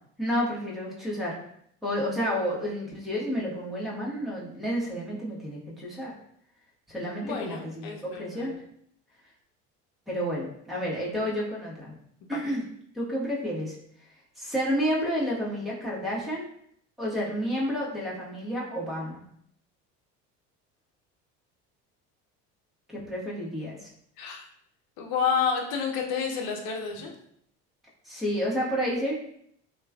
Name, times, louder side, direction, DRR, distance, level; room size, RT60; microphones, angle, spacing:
voice 1, 0.2-1.4 1.8-6.1 6.9-8.5 10.1-11.9 12.3-12.6 12.9-13.8 14.4-16.5 17.0-19.2 22.9-23.9 28.0-29.2, equal, ahead, -6 dB, 1.1 m, -30 dB
voice 2, 7.2-8.5 12.2-12.4 24.2-24.4 25.0-27.1, left 6 dB, 65° left, 2 dB, 0.7 m, -30 dB
3.0 x 2.3 x 2.3 m, 0.69 s
hypercardioid pair, 75°, 37 cm